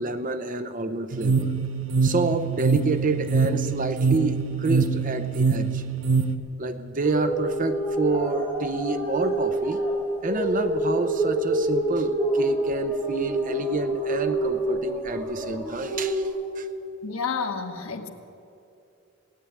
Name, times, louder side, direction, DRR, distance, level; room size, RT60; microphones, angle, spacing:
voice 1, 0.0-1.6 2.0-5.8 6.6-9.8 10.2-16.3 16.6-16.7, right 3 dB, 40° right, 10 dB, 0.7 m, -28 dB
sound 1, 1.1-6.3, right 4 dB, 75° right, 0.7 m, -24 dB
sound 2, 7.0-16.3, right 1 dB, 10° right, 5.1 m, -27 dB
voice 2, 17.0-18.1, left 5 dB, 85° left, 6 dB, 1.2 m, -30 dB
17.5 x 8.6 x 9.6 m, 2.6 s
head